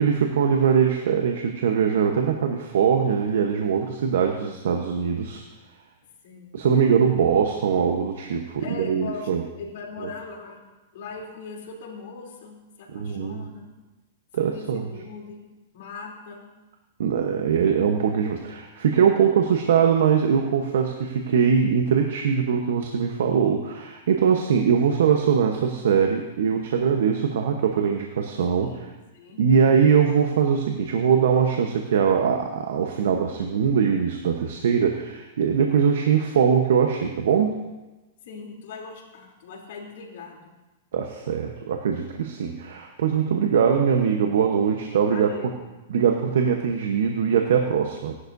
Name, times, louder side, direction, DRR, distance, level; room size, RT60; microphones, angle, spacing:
voice 1, 0.0-5.4 6.5-9.4 12.9-13.4 14.3-14.9 17.0-28.7 29.4-37.6 40.9-45.3 45.9-48.1, right 7 dB, 80° right, 3 dB, 1.0 m, -22 dB
voice 2, 6.2-6.6 7.2-7.3 8.6-10.6 10.9-13.7 14.4-15.5 15.7-16.5 28.5-29.5 38.2-40.5 45.1-45.7, left 4 dB, 65° left, -1 dB, 3.3 m, -40 dB
17.5 x 11.0 x 2.7 m, 1.1 s
hypercardioid pair, 140°, 0 cm